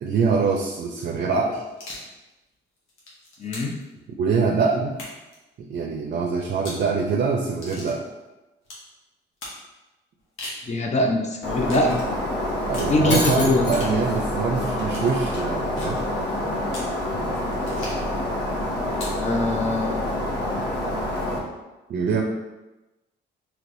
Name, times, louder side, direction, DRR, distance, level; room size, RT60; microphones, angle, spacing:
voice 1, 0.0-1.6 4.2-4.9 5.6-8.0 12.7-16.0 21.9-22.2, right 5 dB, 55° right, 2 dB, 0.4 m, -24 dB
sound 1, 1.7-2.1 2.8-3.8 4.9-5.4 6.5-6.9 7.6-8.0 8.6-8.9 9.4-9.6 10.2-10.6 11.7-11.9 12.7-13.0 13.7-14.0 14.9-15.1 15.8-16.0 16.7-16.9 17.7-18.1 18.9-19.2, left 1 dB, 90° left, 1.0 m, -38 dB
voice 2, 3.4-3.8 10.6-12.0 12.9-13.7 19.2-20.0, left 2 dB, 35° left, 1 dB, 0.5 m, -22 dB
Shatter, 11.4-21.4, left 1 dB, 60° left, 0.9 m, -27 dB
3.2 x 3.0 x 2.6 m, 1.1 s
cardioid pair, 90°, 20 cm